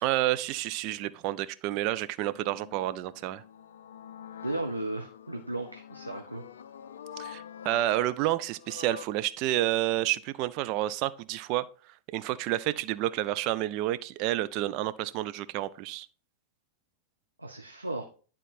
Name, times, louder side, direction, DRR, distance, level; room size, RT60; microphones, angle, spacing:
voice 1, 0.0-3.4 7.2-11.7 12.1-16.1, right 15 dB, 40° right, 0.4 m, -29 dB
sound 1, 2.2-9.1, left 8 dB, 65° left, 0.4 m, -46 dB
voice 2, 4.4-6.4 17.4-18.0, right 2 dB, 85° right, 0.7 m, -35 dB
10.5 x 3.8 x 4.2 m
figure-of-eight pair, 90°, 0 cm